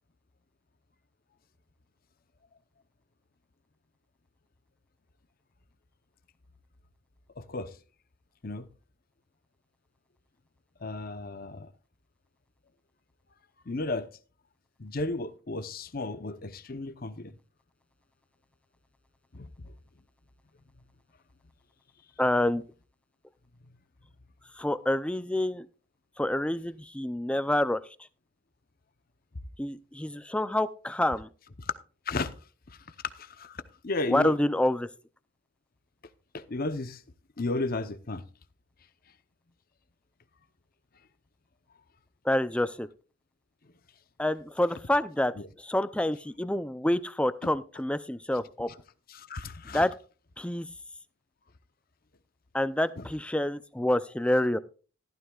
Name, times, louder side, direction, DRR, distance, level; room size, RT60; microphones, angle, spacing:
voice 1, 7.4-7.7 8.4-8.7 10.8-11.7 13.7-14.1 14.8-17.3 19.3-19.7 31.6-31.7 32.1-32.3 32.7-34.4 36.3-37.0 37.4-38.2 45.4-45.5 47.4-47.5 49.1-49.8 53.0-53.1, left 2 dB, 45° left, 0.8 m, -34 dB
voice 2, 22.2-22.6 24.6-25.7 26.2-27.8 29.6-31.3 34.1-34.9 42.3-42.9 44.2-45.3 45.6-48.7 49.7-49.9 50.4-50.7 52.5-54.6, left 1 dB, 5° left, 0.4 m, -27 dB
15.0 x 12.5 x 2.4 m
head